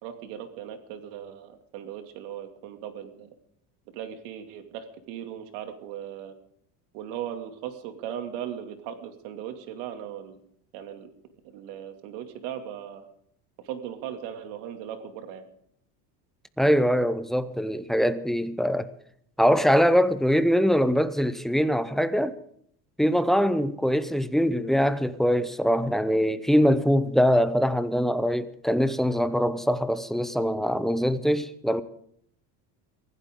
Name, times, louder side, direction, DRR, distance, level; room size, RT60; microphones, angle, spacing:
voice 1, 0.0-3.3 3.9-6.3 6.9-10.4 10.7-11.1 11.4-13.1 13.6-15.5, right 9 dB, 75° right, 2.6 m, -38 dB
voice 2, 16.6-18.9 19.4-22.4 23.0-31.8, equal, ahead, 0.6 m, -23 dB
24.5 x 15.5 x 3.7 m
cardioid pair, 140°, 47 cm